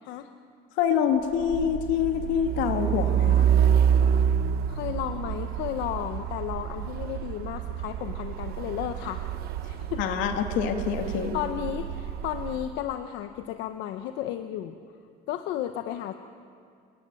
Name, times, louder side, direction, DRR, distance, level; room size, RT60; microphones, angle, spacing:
voice 1, 0.8-3.5 10.0-11.4, left 7 dB, 90° left, 4 dB, 2.8 m, -26 dB
Truck, 1.3-12.7, right 9 dB, 55° right, 0.9 m, -27 dB
voice 2, 4.7-9.2 9.7-10.0 11.1-14.8 15.3-16.1, left 11 dB, 70° left, 7 dB, 1.0 m, -33 dB
28.5 x 20.5 x 9.1 m, 2.3 s
cardioid pair, 175°, 19 cm